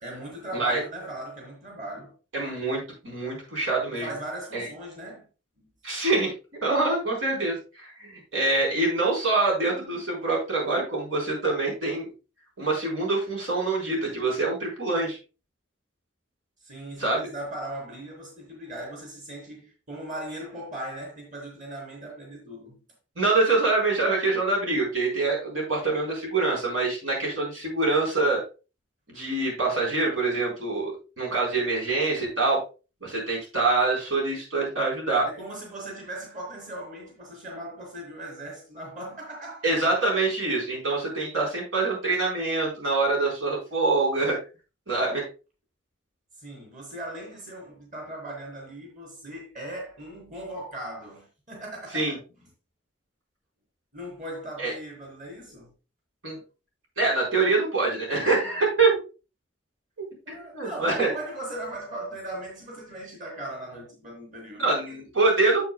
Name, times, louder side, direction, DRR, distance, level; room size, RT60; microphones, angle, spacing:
voice 1, 0.0-2.1 3.9-5.3 5.6-5.7 16.6-22.8 35.2-39.7 46.4-52.5 53.9-55.7 60.3-65.3, right 1 dB, 40° right, 3.9 m, -39 dB
voice 2, 2.3-4.1 4.5-4.7 5.8-6.3 6.6-12.1 12.6-15.2 17.0-17.2 23.2-28.4 29.1-32.6 33.0-35.3 39.6-44.4 44.9-45.3 51.9-52.1 54.6-54.7 56.2-56.4 57.0-59.0 60.3-61.1 64.6-65.7, right 3 dB, 85° right, 4.2 m, -25 dB
9.5 x 8.0 x 2.2 m
head